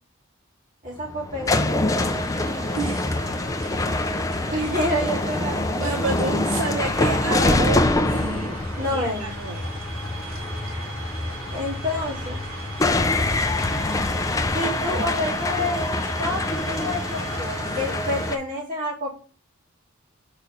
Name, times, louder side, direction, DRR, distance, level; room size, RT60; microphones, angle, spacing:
voice 1, 0.8-2.0 4.5-6.0 8.8-9.3 11.5-12.4 14.5-19.1, left 1 dB, 40° right, -4 dB, 2.6 m, -28 dB
sound 1, 0.9-18.4, left 2 dB, 15° left, 0.4 m, -25 dB
sound 2, 1.9-18.4, right 2 dB, 90° right, 2.0 m, -40 dB
voice 2, 2.8-3.1 5.8-8.6 8.9-9.7 10.3-10.4, right 3 dB, 70° right, 2 dB, 0.7 m, -29 dB
sound 3, 8.8-17.5, right 1 dB, 30° left, 2.1 m, -44 dB
4.6 x 3.8 x 5.6 m, 0.38 s
head